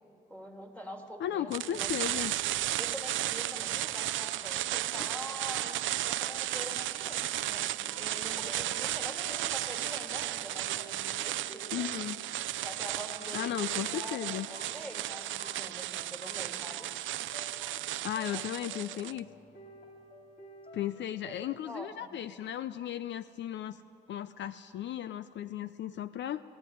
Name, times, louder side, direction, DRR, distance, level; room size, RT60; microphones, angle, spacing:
voice 1, 0.3-1.9 2.8-11.8 12.6-16.9 18.3-18.5 18.9-19.0 21.2-22.1, equal, 5° left, 1 dB, 3.1 m, -45 dB
voice 2, 1.2-2.3 11.7-12.2 13.3-14.5 18.0-19.3 20.7-23.8 24.1-26.4, left 11 dB, 65° left, 14 dB, 0.5 m, -35 dB
sound 1, 1.5-19.2, right 14 dB, 75° right, 0.5 m, -34 dB
sound 2, 3.4-21.2, left 1 dB, 45° left, 4.0 m, -54 dB
20.0 x 14.0 x 9.9 m, 2.9 s
cardioid pair, 90°, 20 cm